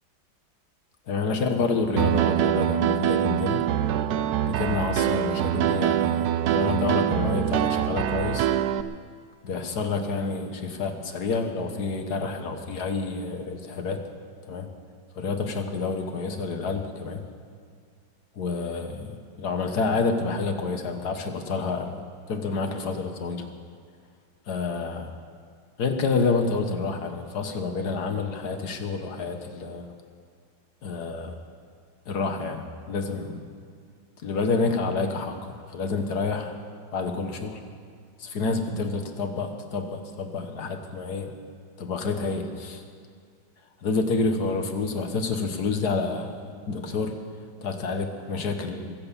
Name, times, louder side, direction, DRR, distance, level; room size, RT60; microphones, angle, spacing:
voice 1, 1.1-3.7 4.4-8.5 9.4-14.0 14.5-14.7 15.2-17.2 18.4-23.5 24.5-25.1 25.8-29.9 30.8-31.4 32.1-33.4 34.2-36.5 36.9-37.6 38.2-41.3 41.8-42.8 43.8-47.1 47.6-48.9, left 4 dB, 60° left, 6 dB, 1.8 m, -28 dB
Piano, 2.0-8.8, right 10 dB, 70° right, 1.0 m, -24 dB
23.0 x 7.9 x 7.0 m, 2.2 s
omnidirectional pair, 1.9 m